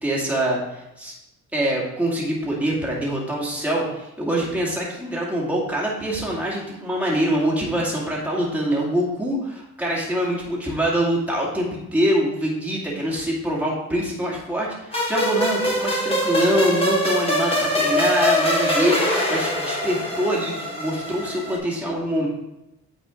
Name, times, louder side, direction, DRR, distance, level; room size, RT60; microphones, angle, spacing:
voice 1, 0.0-1.1 1.5-22.3, right 1 dB, 5° right, -5 dB, 2.2 m, -24 dB
sound 1, 14.9-21.6, left 1 dB, 20° left, 2.0 m, -23 dB
9.0 x 4.2 x 3.7 m, 0.90 s
cardioid pair, 90°, 30 cm